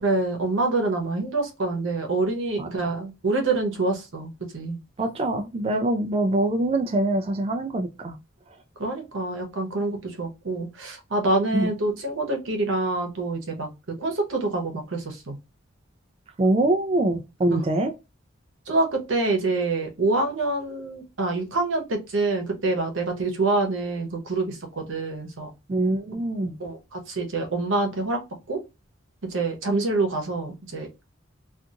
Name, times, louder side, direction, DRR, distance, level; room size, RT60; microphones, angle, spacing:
voice 1, 0.0-4.8 8.8-13.7 14.0-15.4 17.5-17.6 18.7-25.5 26.6-28.2 28.5-28.6 29.2-30.9, right 2 dB, 85° right, 0.8 m, -26 dB
voice 2, 5.0-8.2 11.5-11.7 16.4-17.9 25.7-26.6, right 2 dB, 30° right, 0.3 m, -24 dB
2.8 x 2.5 x 2.4 m
head